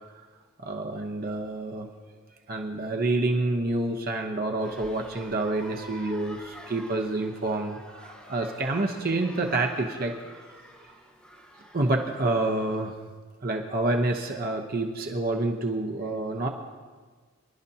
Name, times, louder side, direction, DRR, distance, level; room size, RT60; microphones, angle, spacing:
voice 1, 0.6-1.9 2.5-10.1 10.8-10.9 11.7-12.9 13.4-16.5, right 2 dB, 45° right, 3 dB, 0.9 m, -28 dB
sound 1, 4.6-12.9, equal, 5° left, 3.0 m, -48 dB
25.5 x 12.0 x 2.8 m, 1.4 s
head